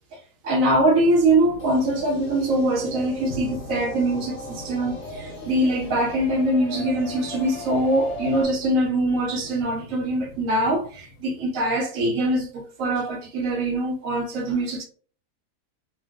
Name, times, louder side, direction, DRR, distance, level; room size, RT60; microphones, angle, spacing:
voice 1, 0.4-14.8, right 1 dB, 70° right, 0.9 m, -23 dB
sound 1, 0.6-11.7, left 1 dB, 80° left, 1.2 m, -42 dB
sound 2, 1.6-8.4, left 1 dB, 55° left, 1.0 m, -37 dB
3.3 x 2.2 x 2.4 m
omnidirectional pair, 1.6 m